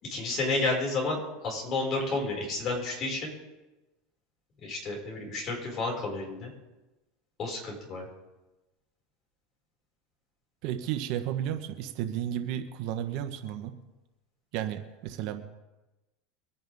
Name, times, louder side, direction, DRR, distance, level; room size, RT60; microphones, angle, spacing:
voice 1, 0.0-3.3 4.6-6.5 7.4-8.1, left 2 dB, 40° left, -2 dB, 6.2 m, -31 dB
voice 2, 10.6-13.8 14.5-15.4, right 11 dB, 60° right, 7 dB, 1.4 m, -33 dB
24.5 x 10.0 x 3.8 m, 1.1 s
supercardioid pair, 130°, 0 cm